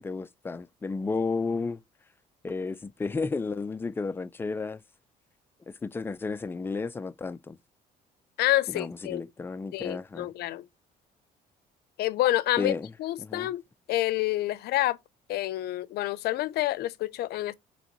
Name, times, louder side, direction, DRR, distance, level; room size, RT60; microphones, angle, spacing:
voice 1, 0.0-1.8 2.4-4.8 5.7-7.6 8.7-10.3 12.6-12.9 13.2-13.5, left 4 dB, 15° left, 0.3 m, -32 dB
voice 2, 8.4-9.2 9.7-10.6 12.0-12.7 13.0-13.6 13.9-15.0 15.3-17.5, left 15 dB, 70° left, 0.5 m, -28 dB
5.1 x 3.5 x 3.0 m
cardioid pair, 110°, 17 cm